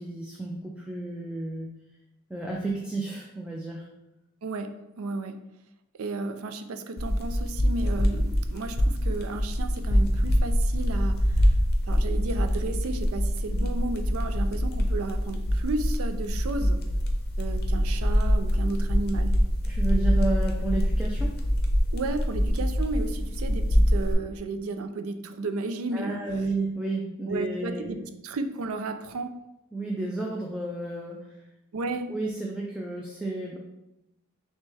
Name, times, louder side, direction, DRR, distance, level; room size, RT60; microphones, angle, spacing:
voice 1, 0.0-1.7 2.3-3.9 19.7-21.3 25.9-28.0 29.7-31.3 32.1-33.6, right 2 dB, 5° right, -2 dB, 0.4 m, -32 dB
voice 2, 4.4-5.4 6.0-11.5 11.9-16.8 17.4-19.4 21.9-26.2 27.3-29.3 31.7-32.1, right 3 dB, 75° right, 8 dB, 0.4 m, -33 dB
sound 1, 7.0-24.1, equal, 45° left, 0.6 m, -25 dB
5.9 x 2.2 x 3.4 m, 0.91 s
head